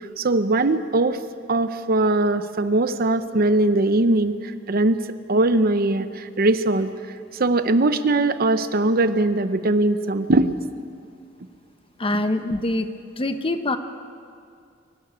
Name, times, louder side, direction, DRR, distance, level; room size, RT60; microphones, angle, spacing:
voice 1, 0.2-1.2 1.5-5.0 5.3-6.9 7.4-10.6, right 2 dB, 50° right, 11 dB, 0.7 m, -20 dB
voice 2, 12.0-12.9 13.2-13.8, left 2 dB, 30° left, 9 dB, 0.9 m, -24 dB
23.5 x 11.5 x 9.8 m, 2.3 s
head